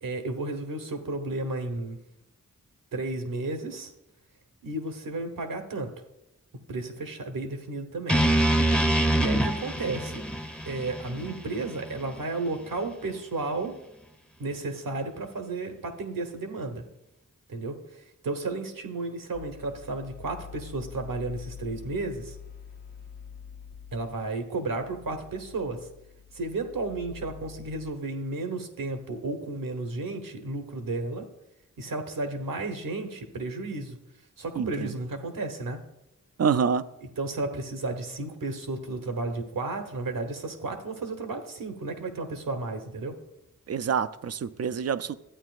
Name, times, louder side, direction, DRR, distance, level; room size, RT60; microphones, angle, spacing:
voice 1, 0.0-2.0 2.9-3.9 4.6-5.9 6.7-8.2 9.1-10.2 10.7-13.7 14.4-16.8 17.5-22.4 23.9-25.9 26.3-31.3 31.8-34.0 34.4-35.8 37.2-43.2, right 2 dB, 80° right, 1.2 m, -33 dB
sound 1, 8.1-12.2, right 1 dB, 5° left, 0.7 m, -25 dB
sound 2, 19.3-27.9, left 7 dB, 30° left, 0.5 m, -46 dB
voice 2, 34.6-34.9 36.4-36.8 43.7-45.1, right 6 dB, 50° right, 0.5 m, -26 dB
13.0 x 8.8 x 2.5 m
cardioid pair, 45°, 33 cm